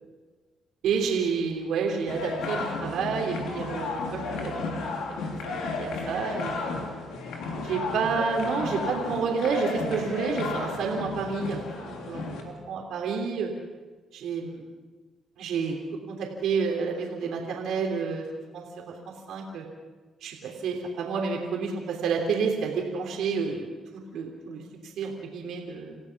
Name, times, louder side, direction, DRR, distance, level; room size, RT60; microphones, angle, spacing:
voice 1, 0.8-6.9 7.6-13.5 14.1-14.6 15.4-15.8 16.1-18.2 18.5-18.9 19.3-19.6 20.2-23.7 24.1-26.0, right 5 dB, 80° right, 1 dB, 3.3 m, -30 dB
sound 1, 2.1-12.4, left 3 dB, 85° left, 3.4 m, -33 dB
28.0 x 15.5 x 6.1 m, 1.3 s
cardioid pair, 90°, 0 cm